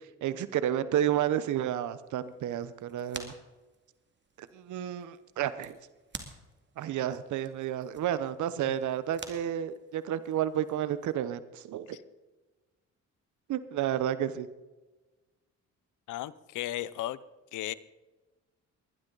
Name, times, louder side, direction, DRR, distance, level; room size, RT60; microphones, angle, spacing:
voice 1, 0.2-3.3 4.4-5.8 6.8-12.0 13.5-14.5, right 11 dB, 75° right, 15 dB, 0.9 m, -31 dB
sound 1, 1.6-11.2, right 4 dB, 40° right, 2.3 m, -50 dB
voice 2, 16.1-17.2 17.5-17.7, left 14 dB, 80° left, 18 dB, 0.7 m, -35 dB
20.5 x 11.5 x 3.9 m, 1.2 s
cardioid pair, 90°, 30 cm